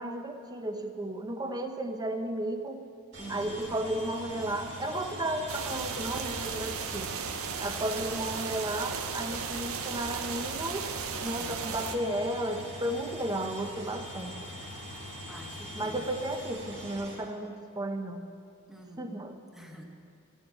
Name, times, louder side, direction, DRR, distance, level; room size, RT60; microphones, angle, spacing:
voice 1, 0.0-2.8 3.3-7.1 7.6-10.9 11.2-14.4 15.7-18.3 19.0-19.4, right 1 dB, 20° right, 6 dB, 0.7 m, -34 dB
sound 1, 3.1-17.1, equal, 55° right, 3.4 m, -43 dB
voice 2, 3.2-3.7 11.2-11.6 15.3-16.1 18.7-19.9, equal, ahead, 1 dB, 1.2 m, -48 dB
sound 2, 5.5-12.0, right 6 dB, 90° right, 0.7 m, -36 dB
14.0 x 7.2 x 7.6 m, 2.4 s
head